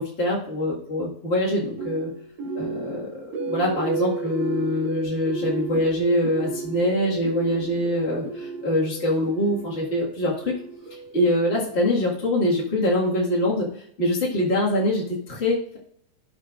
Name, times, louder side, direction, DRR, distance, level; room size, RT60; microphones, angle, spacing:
voice 1, 0.0-2.1 2.5-3.2 3.5-10.5 11.1-15.8, left 1 dB, 30° left, -5 dB, 1.3 m, -24 dB
sound 1, 1.8-11.9, right 3 dB, 65° right, 2.9 m, -33 dB
16.5 x 6.4 x 2.5 m, 0.69 s
omnidirectional pair, 3.8 m